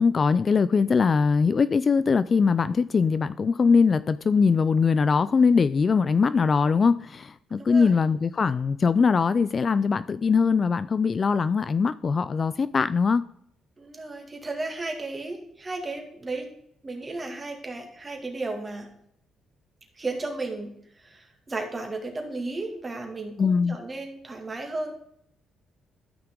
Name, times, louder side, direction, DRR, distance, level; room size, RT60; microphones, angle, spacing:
voice 1, 0.0-13.2 23.4-23.8, left 5 dB, 40° left, 0.3 m, -22 dB
voice 2, 7.6-8.0 13.8-16.5 16.8-18.9 20.0-25.0, right 2 dB, 25° right, 2.3 m, -34 dB
12.5 x 5.9 x 3.8 m
cardioid pair, 90°, 0 cm